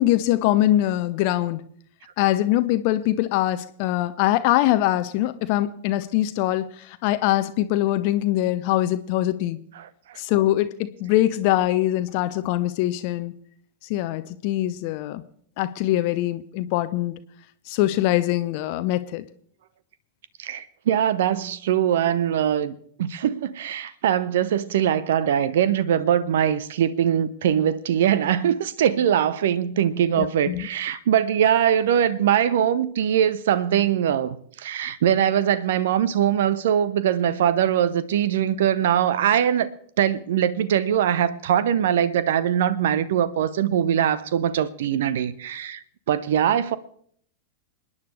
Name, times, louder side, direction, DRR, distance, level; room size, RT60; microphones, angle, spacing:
voice 1, 0.0-1.6 2.2-9.6 10.2-13.3 13.9-15.2 15.6-17.1 17.7-19.3 30.2-30.7, left 14 dB, 45° left, 0.7 m, -23 dB
voice 2, 9.8-10.2 20.4-39.7 40.0-46.8, right 9 dB, 60° right, 0.7 m, -22 dB
28.0 x 9.7 x 3.3 m
figure-of-eight pair, 90°, 0 cm